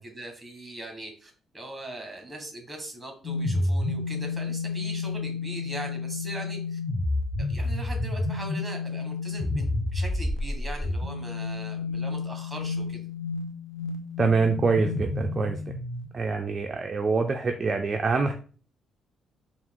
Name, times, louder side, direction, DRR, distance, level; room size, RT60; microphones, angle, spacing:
voice 1, 0.0-6.8 7.5-13.0, right 1 dB, 15° right, 3 dB, 1.6 m, -40 dB
sound 1, 3.2-16.1, left 3 dB, 40° left, 0.7 m, -30 dB
voice 2, 14.2-15.6 16.1-18.3, right 4 dB, 35° right, 5 dB, 0.4 m, -25 dB
4.4 x 2.4 x 3.7 m, 0.40 s
cardioid pair, 90°, 0 cm